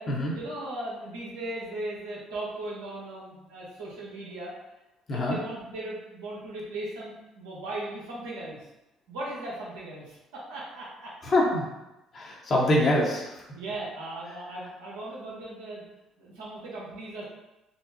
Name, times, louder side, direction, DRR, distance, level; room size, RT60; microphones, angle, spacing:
voice 1, 0.0-4.5 5.1-8.6 9.1-11.1 13.5-15.8 16.2-17.2, right 1 dB, 80° right, -6 dB, 1.0 m, -38 dB
voice 2, 11.2-11.6 12.1-13.4, left 1 dB, 50° left, -3 dB, 1.0 m, -24 dB
4.1 x 2.0 x 2.8 m, 0.98 s
hypercardioid pair, 65°, 0 cm